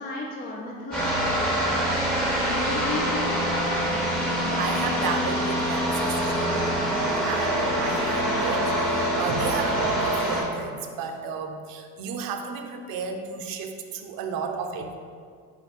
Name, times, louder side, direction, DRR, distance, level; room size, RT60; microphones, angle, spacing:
voice 1, 0.0-1.8 2.3-3.6, left 2 dB, 25° left, -2 dB, 0.5 m, -33 dB
sound 1, 0.9-10.4, equal, ahead, 1.2 m, -25 dB
voice 2, 4.6-14.9, right 5 dB, 55° right, 5 dB, 0.6 m, -33 dB
4.3 x 2.3 x 4.0 m, 2.1 s
supercardioid pair, 80°, 42 cm